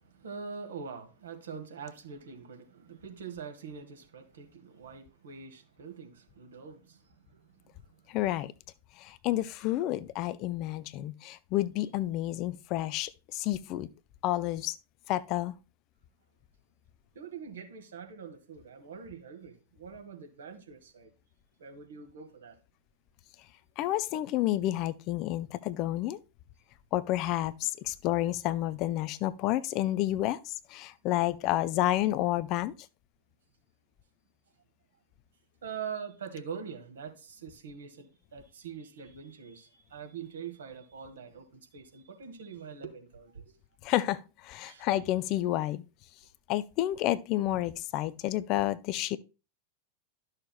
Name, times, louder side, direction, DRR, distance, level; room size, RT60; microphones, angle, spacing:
voice 1, 0.0-8.2 17.1-21.1 21.6-22.6 35.6-43.5 43.9-44.0 44.6-44.9, right 6 dB, 65° right, 1.6 m, -44 dB
voice 2, 8.1-8.5 9.0-13.9 14.2-14.8 15.1-15.5 23.8-26.2 26.9-32.7 43.8-45.8 46.5-49.2, left 15 dB, 40° left, 0.5 m, -30 dB
12.5 x 6.4 x 2.2 m
figure-of-eight pair, 90°, 0 cm